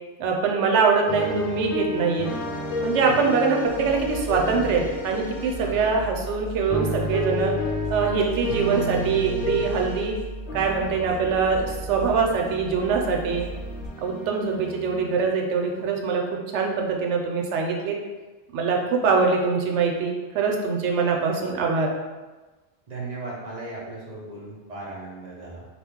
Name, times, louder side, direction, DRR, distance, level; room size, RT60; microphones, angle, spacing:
voice 1, 0.2-2.3 2.8-7.5 7.9-10.2 10.5-13.5 14.0-18.0 18.5-21.9, right 5 dB, 80° right, 1 dB, 0.9 m, -23 dB
sound 1, 1.1-6.0 6.5-10.2 10.5-15.3, left 1 dB, 55° left, 0.7 m, -32 dB
sound 2, 3.6-13.9, equal, 85° left, 0.9 m, -38 dB
voice 2, 5.6-6.0 22.9-25.6, right 2 dB, 45° right, -5 dB, 0.7 m, -37 dB
3.0 x 2.3 x 3.5 m, 1.2 s
omnidirectional pair, 1.2 m